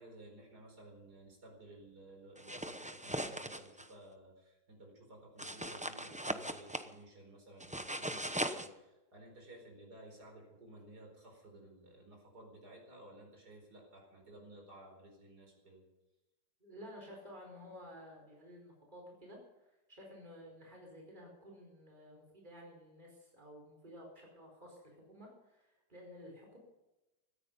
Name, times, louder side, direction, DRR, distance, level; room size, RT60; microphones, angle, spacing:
voice 1, 0.0-15.8, right 1 dB, 70° right, 0 dB, 5.2 m, -55 dB
sound 1, 2.4-3.9 5.4-6.9 7.6-8.7, right 1 dB, 10° right, 0.5 m, -39 dB
voice 2, 16.6-26.6, equal, 25° right, 0 dB, 5.0 m, -53 dB
17.0 x 14.5 x 5.5 m, 0.99 s
omnidirectional pair, 1.7 m